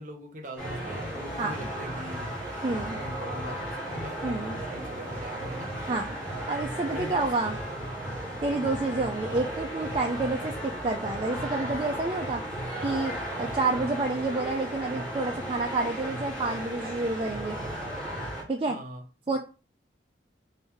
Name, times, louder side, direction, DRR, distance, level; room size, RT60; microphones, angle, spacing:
voice 1, 0.0-4.4 4.7-5.7 6.9-7.2 7.5-7.8 8.5-8.9 18.7-19.3, equal, 45° right, 3 dB, 0.9 m, -43 dB
sound 1, 0.6-18.4, right 1 dB, 5° left, 1.8 m, -35 dB
voice 2, 2.6-3.0 4.2-4.6 5.9-6.2 6.5-7.6 8.4-12.4 12.8-13.1 13.4-17.6 18.5-18.8 19.3-19.4, right 3 dB, 30° right, 2 dB, 0.4 m, -29 dB
3.7 x 2.7 x 4.5 m, 0.33 s
head